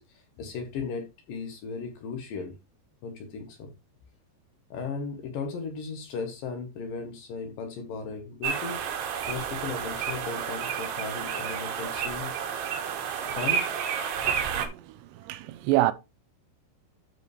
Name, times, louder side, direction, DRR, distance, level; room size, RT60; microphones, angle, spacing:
voice 1, 0.0-2.5 3.0-3.7 4.7-12.3 13.3-13.6, left 5 dB, 65° left, 2.4 m, -36 dB
sound 1, 8.4-14.7, right 8 dB, 70° right, 3.4 m, -30 dB
voice 2, 14.5-15.9, right 15 dB, 90° right, 2.9 m, -27 dB
12.0 x 5.1 x 3.3 m
omnidirectional pair, 5.1 m